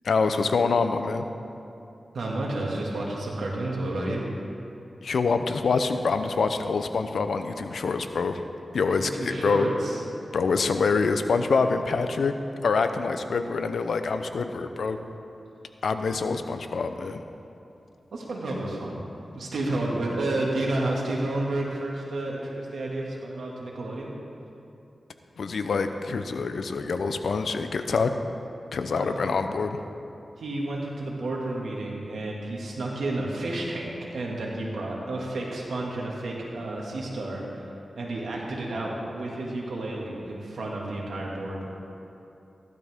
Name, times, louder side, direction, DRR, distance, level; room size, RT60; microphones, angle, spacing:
voice 1, 0.0-1.3 5.0-8.4 8.7-9.7 10.3-12.3 12.6-15.0 15.8-17.2 25.4-28.1 28.7-29.8, left 4 dB, 80° left, 8 dB, 0.7 m, -25 dB
voice 2, 2.1-4.2 9.0-10.0 18.1-19.0 19.3-24.1 29.0-29.3 30.4-41.7, right 2 dB, 90° right, -2 dB, 2.1 m, -31 dB
15.5 x 12.0 x 3.6 m, 2.7 s
cardioid pair, 65°, 0 cm